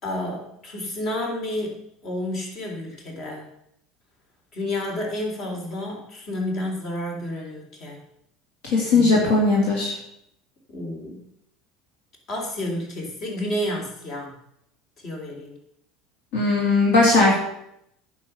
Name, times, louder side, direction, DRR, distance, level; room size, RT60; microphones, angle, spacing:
voice 1, 0.0-3.5 4.5-8.0 8.9-9.3 10.7-11.2 12.3-14.4 15.0-15.6, left 1 dB, 50° left, 0 dB, 3.7 m, -30 dB
voice 2, 8.6-9.9 16.3-17.4, left 3 dB, 75° left, -3 dB, 2.8 m, -18 dB
9.9 x 7.0 x 5.9 m, 0.78 s
hypercardioid pair, 85°, 0 cm